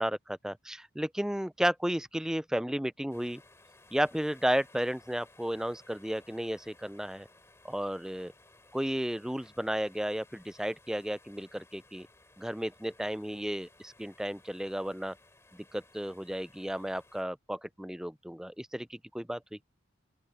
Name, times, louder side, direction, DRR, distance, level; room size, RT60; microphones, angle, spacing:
voice 1, 0.0-3.4 3.9-7.3 7.6-8.3 8.7-12.1 12.4-15.2 15.7-19.7, equal, 5° right, 0.4 m, -33 dB
sound 1, 3.1-17.2, left 2 dB, 15° left, 3.3 m, -60 dB
open air
head